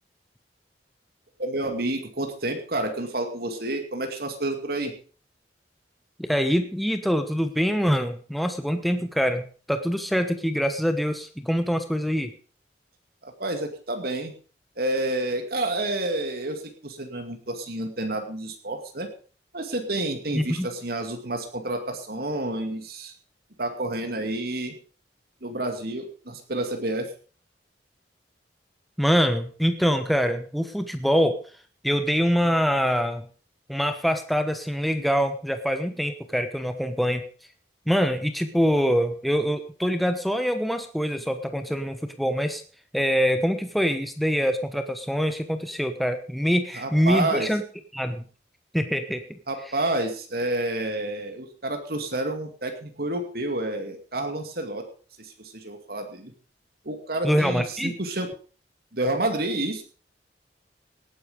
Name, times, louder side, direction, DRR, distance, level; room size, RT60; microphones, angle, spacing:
voice 1, 1.4-4.9 13.2-14.3 14.8-19.1 19.5-23.1 23.6-24.7 25.4-27.1 46.7-47.5 49.5-54.8 55.2-56.3 56.8-58.3 58.9-59.8, right 2 dB, 60° right, 5 dB, 2.4 m, -29 dB
voice 2, 6.2-12.3 20.3-20.7 29.0-31.4 31.8-33.3 33.7-37.2 37.9-42.6 42.9-47.6 47.9-48.2 48.7-49.4 57.2-57.9, equal, ahead, 7 dB, 1.1 m, -24 dB
18.5 x 10.0 x 5.2 m, 0.40 s
head